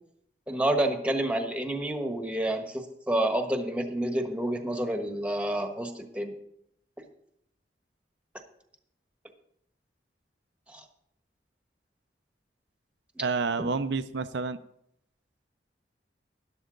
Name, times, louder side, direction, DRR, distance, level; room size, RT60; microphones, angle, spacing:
voice 1, 0.5-6.3 10.7-10.8 13.1-13.2 13.6-13.7, right 1 dB, 5° right, 5 dB, 1.2 m, -29 dB
voice 2, 13.2-14.6, right 4 dB, 75° right, 10 dB, 0.5 m, -29 dB
12.5 x 11.5 x 3.9 m, 0.74 s
head